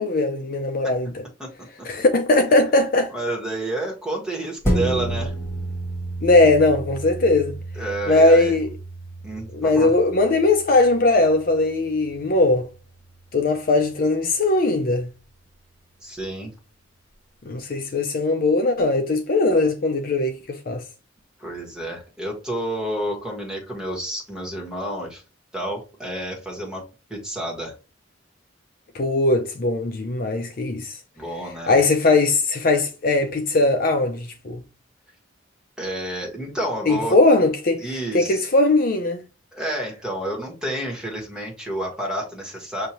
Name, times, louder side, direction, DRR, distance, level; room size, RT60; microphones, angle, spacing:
voice 1, 0.0-1.2 1.8-3.1 6.2-7.5 8.1-8.7 9.5-12.7 13.3-15.1 17.5-20.8 28.9-31.0 31.7-34.6 36.9-37.9 38.1-39.2, left 2 dB, 45° left, 0.5 m, -19 dB
voice 2, 3.1-5.3 7.7-8.5 9.2-9.9 16.0-16.5 21.4-25.2 25.5-26.8 27.1-27.7 31.2-31.8 35.8-37.2 37.8-38.5 39.5-42.9, right 1 dB, 5° right, 1.6 m, -30 dB
sound 1, 4.6-13.5 13.9-14.0, right 1 dB, 15° left, 1.5 m, -31 dB
6.6 x 2.7 x 2.9 m
head